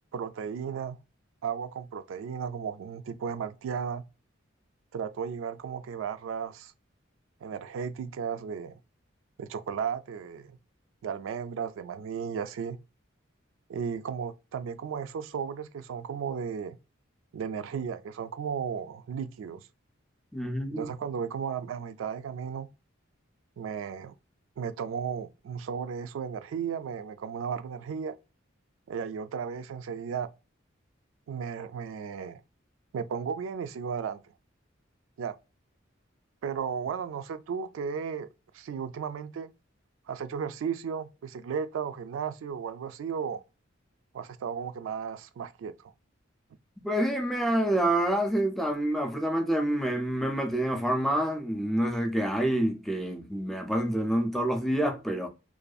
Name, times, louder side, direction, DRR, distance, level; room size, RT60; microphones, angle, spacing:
voice 1, 0.1-1.0 1.4-4.1 4.9-6.7 7.4-8.8 9.4-10.6 11.0-12.8 13.7-16.8 17.3-19.6 20.7-22.7 23.6-24.1 24.6-28.2 28.9-30.3 31.3-32.4 32.9-34.2 35.2-35.4 36.4-38.3 38.5-39.5 40.1-43.4 44.1-45.9, right 7 dB, 75° right, 0.3 m, -34 dB
voice 2, 20.3-20.9 46.8-55.3, right 1 dB, ahead, 0.4 m, -27 dB
2.5 x 2.3 x 2.3 m
head